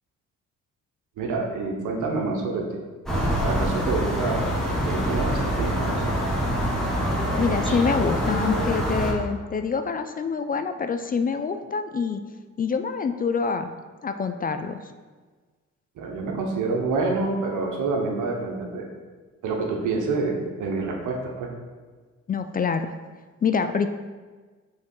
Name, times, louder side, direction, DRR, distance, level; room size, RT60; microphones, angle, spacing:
voice 1, 1.2-2.6 3.4-4.4 4.8-6.1 16.0-18.9 19.4-21.5, right 3 dB, 80° right, 1 dB, 1.2 m, -27 dB
sound 1, 3.1-9.1, equal, ahead, 1.5 m, -25 dB
voice 2, 7.4-12.2 12.6-13.7 14.0-14.8 22.3-22.9 23.4-23.9, left 5 dB, 30° left, 8 dB, 0.4 m, -26 dB
5.2 x 3.7 x 5.4 m, 1.4 s
cardioid pair, 90°, 30 cm